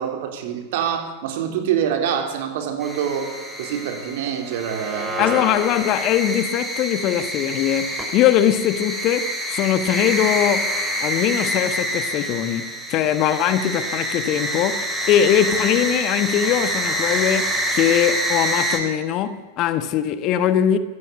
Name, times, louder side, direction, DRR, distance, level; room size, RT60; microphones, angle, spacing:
voice 1, 0.0-3.3 3.6-5.3, right 8 dB, 50° right, 3.5 m, -25 dB
sound 1, 2.8-18.8, equal, 10° right, 6.1 m, -26 dB
voice 2, 5.2-10.7 11.0-20.8, left 10 dB, 40° left, 1.4 m, -21 dB
23.5 x 17.0 x 8.2 m
figure-of-eight pair, 90°, 0 cm